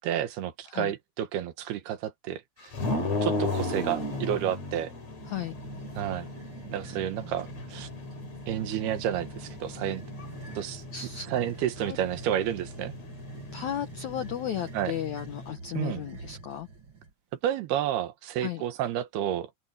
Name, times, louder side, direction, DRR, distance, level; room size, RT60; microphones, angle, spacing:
voice 1, 0.0-2.7 3.2-4.9 6.0-6.3 6.7-7.9 8.5-10.0 10.6-10.8 11.3-12.9 14.7-14.9 15.7-16.0 17.4-19.5, right 11 dB, 70° right, 3.1 m, -30 dB
sound 1, 2.7-15.5, left 2 dB, 40° left, 4.4 m, -36 dB
sound 2, 2.8-3.3 3.9-4.5 5.1-17.1, right 4 dB, 50° right, 1.4 m, -46 dB
voice 2, 10.9-11.3 11.8-12.0 13.5-16.7 18.4-18.6, left 10 dB, 85° left, 1.6 m, -34 dB
open air
omnidirectional pair, 5.0 m